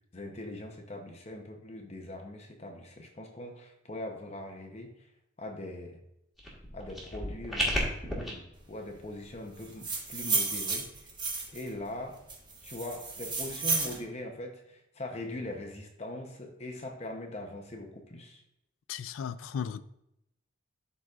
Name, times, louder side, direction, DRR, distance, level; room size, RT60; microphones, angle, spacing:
voice 1, 0.1-4.9 5.4-6.0 6.7-10.9 11.5-12.2 12.6-18.4, left 1 dB, 30° left, 0.7 m, -41 dB
sound 1, 6.4-8.3, equal, ahead, 1.5 m, -33 dB
sound 2, 9.6-11.7 12.3-14.0, right 4 dB, 20° right, 1.0 m, -32 dB
voice 2, 18.9-19.8, left 7 dB, 85° left, 0.4 m, -35 dB
12.0 x 4.0 x 2.4 m
head